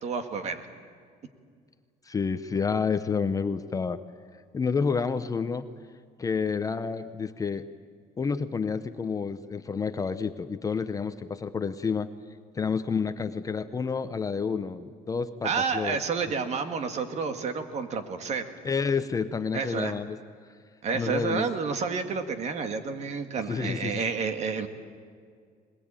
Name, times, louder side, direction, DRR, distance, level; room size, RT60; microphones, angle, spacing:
voice 1, 0.0-0.7 15.4-18.5 19.5-19.9 20.8-24.7, right 5 dB, 45° right, 8 dB, 1.9 m, -30 dB
voice 2, 2.0-4.0 4.5-5.7 6.2-7.6 8.2-12.1 12.5-16.0 18.6-20.2 20.9-21.5 23.5-24.0, left 5 dB, 20° left, 11 dB, 0.7 m, -29 dB
21.5 x 21.0 x 8.9 m, 2.1 s
cardioid pair, 140°, 16 cm